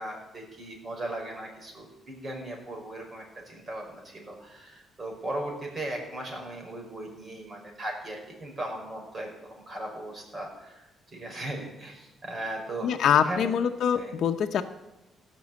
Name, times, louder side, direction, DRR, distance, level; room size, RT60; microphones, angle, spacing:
voice 1, 0.0-12.9 13.3-13.5 14.0-14.1, right 1 dB, 35° right, 1 dB, 5.2 m, -37 dB
voice 2, 12.8-14.6, left 8 dB, 70° left, 4 dB, 0.8 m, -24 dB
15.5 x 6.2 x 8.1 m, 1.0 s
cardioid pair, 90°, 0 cm